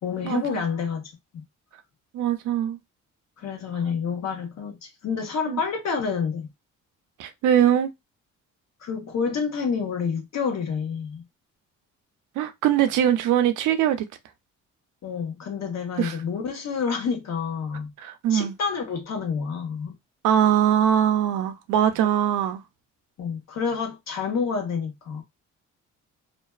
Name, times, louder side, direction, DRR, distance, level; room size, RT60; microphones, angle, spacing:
voice 1, 0.0-1.4 3.4-6.5 8.8-11.2 15.0-17.9 18.3-19.9 23.2-25.2, left 6 dB, 60° left, 1.0 m, -28 dB
voice 2, 2.1-2.8 5.5-5.6 7.2-7.9 12.4-14.1 16.0-16.2 18.0-18.5 20.2-22.6, right 10 dB, 85° right, 0.5 m, -22 dB
2.5 x 2.3 x 2.3 m
cardioid pair, 90°, 30 cm